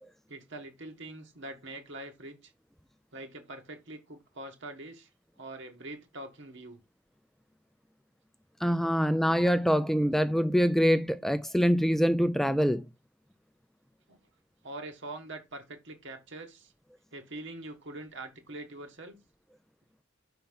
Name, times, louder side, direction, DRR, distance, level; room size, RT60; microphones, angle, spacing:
voice 1, 0.3-2.5 3.1-5.1 5.4-6.8 14.1-14.2 14.6-16.7 17.1-19.2, right 2 dB, 65° right, 1.7 m, -43 dB
voice 2, 8.6-12.8, equal, ahead, 0.3 m, -25 dB
5.6 x 4.3 x 5.5 m
head